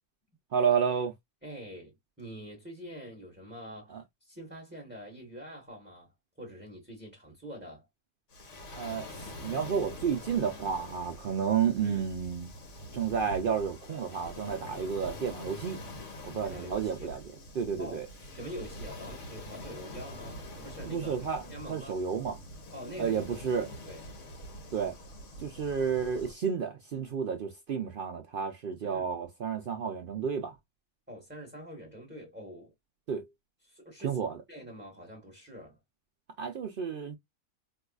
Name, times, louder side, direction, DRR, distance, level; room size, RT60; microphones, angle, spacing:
voice 1, 0.5-1.1 3.9-4.0 8.8-12.5 12.9-15.8 16.2-17.2 17.5-18.1 20.8-21.4 21.7-22.4 23.0-23.7 24.7-25.0 25.4-30.6 33.1-33.3 34.0-34.4 36.4-37.2, right 7 dB, 85° right, 0.4 m, -31 dB
voice 2, 1.4-3.9 4.2-6.1 6.4-7.9 11.8-12.1 16.4-17.1 17.8-18.1 18.3-21.1 21.5-22.0 22.7-23.2 23.6-24.0 28.8-29.1 31.1-32.7 33.6-34.2 34.5-35.8, equal, 10° right, 1.1 m, -45 dB
Waves surf, 8.3-26.4, left 1 dB, 55° left, 1.2 m, -45 dB
4.6 x 2.3 x 2.3 m
omnidirectional pair, 1.6 m